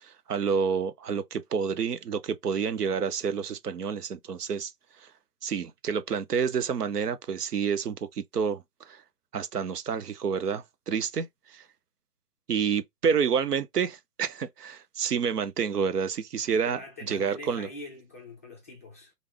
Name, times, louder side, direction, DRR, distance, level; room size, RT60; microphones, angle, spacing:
voice 1, 0.0-4.7 5.4-8.6 8.9-9.0 9.3-11.6 12.5-17.7, right 6 dB, 80° right, 0.8 m, -29 dB
voice 2, 16.6-19.1, left 2 dB, 10° left, 0.4 m, -44 dB
3.3 x 2.5 x 3.3 m
figure-of-eight pair, 125°, 46 cm